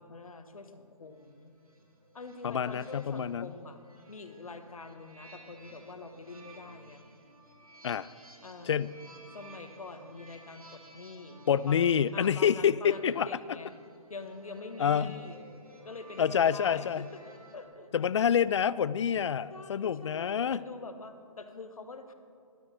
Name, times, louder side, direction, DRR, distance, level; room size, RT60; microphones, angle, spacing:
voice 1, 0.0-1.5 2.1-3.8 4.1-7.0 8.4-8.8 9.3-13.7 14.1-15.4 15.8-17.0 17.5-17.9 19.5-22.1, left 3 dB, 70° left, 8 dB, 1.2 m, -45 dB
sound 1, 1.1-17.6, right 1 dB, 75° right, 2.3 m, -55 dB
voice 2, 2.4-3.5 7.8-8.1 8.6-8.9 11.5-13.3 14.8-15.1 16.2-17.1 17.9-20.6, left 8 dB, 55° left, 18 dB, 0.4 m, -27 dB
12.5 x 11.5 x 4.3 m, 2.6 s
figure-of-eight pair, 140°, 18 cm